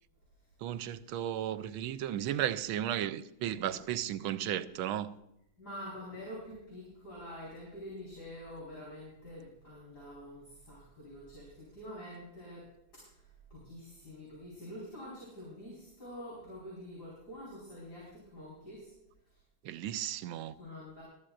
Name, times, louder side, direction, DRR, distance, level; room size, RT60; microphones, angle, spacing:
voice 1, 0.6-5.2 19.6-20.5, right 11 dB, 85° right, 1.4 m, -34 dB
voice 2, 5.6-18.9 20.6-21.0, equal, 50° left, 5.6 m, -47 dB
21.5 x 13.0 x 2.5 m
omnidirectional pair, 2.2 m